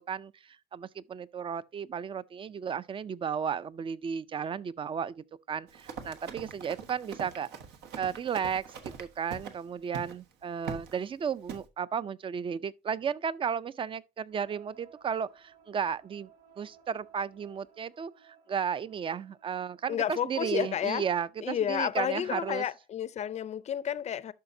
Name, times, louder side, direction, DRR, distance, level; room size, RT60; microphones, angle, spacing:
voice 1, 0.0-7.5 8.0-16.3 16.6-22.6, right 7 dB, 30° right, 0.4 m, -34 dB
Run, 5.7-9.6 9.9-10.2 10.6-11.0 11.5-11.7, right 6 dB, 80° right, 1.2 m, -42 dB
sound 1, 14.3-20.1, right 8 dB, 55° right, 4.6 m, -59 dB
voice 2, 19.9-21.0 21.4-24.3, left 9 dB, 40° left, 0.5 m, -31 dB
11.5 x 5.8 x 2.7 m
cardioid pair, 110°, 17 cm